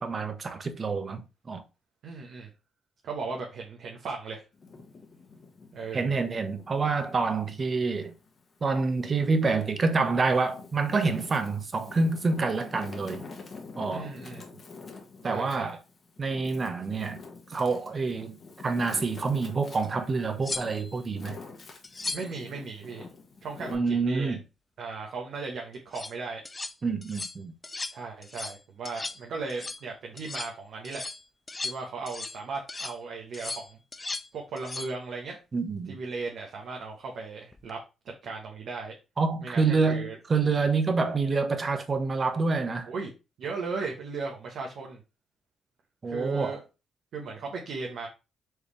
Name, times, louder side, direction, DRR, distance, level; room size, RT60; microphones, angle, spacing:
voice 1, 0.0-1.6 5.9-8.1 8.6-13.3 13.8-14.1 15.2-15.8 16.2-17.2 17.5-18.4 18.6-21.4 23.7-24.4 26.8-27.5 35.5-36.0 39.2-42.9 46.0-46.5, right 4 dB, 40° right, 0.8 m, -27 dB
voice 2, 2.0-2.5 3.0-4.4 5.7-6.2 13.9-14.4 15.2-15.7 22.1-23.0 23.4-24.4 24.8-26.4 27.8-31.0 31.6-33.8 34.3-35.4 35.9-37.8 38.2-38.9 39.4-40.2 42.9-43.1 43.4-45.0 46.0-46.6 47.1-48.1, right 4 dB, 70° right, 1.0 m, -36 dB
Wind, 4.5-7.4 7.9-9.2 9.8-23.7, left 4 dB, 50° left, 1.2 m, -46 dB
sound 1, 19.8-19.9 20.4-21.0 21.8-22.4 25.7-26.1 26.4-26.7 27.0-27.4 27.6-28.0 28.2-28.6 28.8-29.2 29.5-29.8 30.2-30.5 30.8-32.4 32.7-33.0 33.3-34.3 34.6-34.9 37.5-37.7, left 3 dB, 25° left, 0.4 m, -37 dB
4.6 x 3.5 x 3.2 m
supercardioid pair, 65°, 0 cm